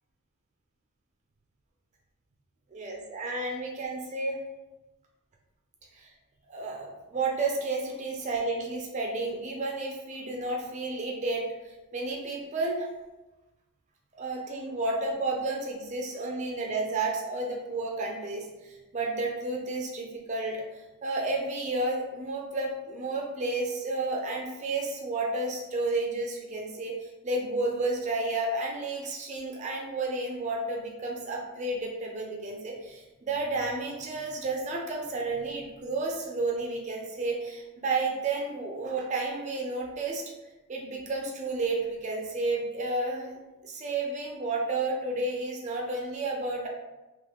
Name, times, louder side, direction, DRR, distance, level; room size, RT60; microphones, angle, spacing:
voice 1, 2.7-4.4 5.9-6.1 6.5-12.9 14.2-40.2 40.7-43.4 43.6-46.7, right 2 dB, 30° right, 0 dB, 0.4 m, -31 dB
2.9 x 2.0 x 3.5 m, 1.1 s
head